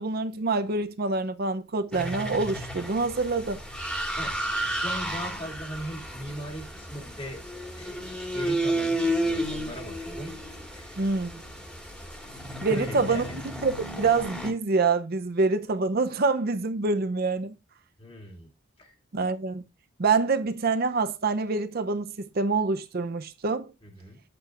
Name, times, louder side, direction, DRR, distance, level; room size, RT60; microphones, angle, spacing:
voice 1, 0.0-3.6 11.0-11.4 12.6-13.2 13.6-17.5 19.1-19.6 20.0-23.7, right 4 dB, 45° right, 0.6 m, -26 dB
sound 1, 1.9-14.5, right 1 dB, 5° left, 1.8 m, -32 dB
voice 2, 4.6-7.4 7.8-10.3 10.7-11.0 12.7-13.4 18.0-18.5 18.8-18.9 23.8-24.2, equal, 25° left, 2.3 m, -39 dB
9.5 x 8.3 x 2.4 m
head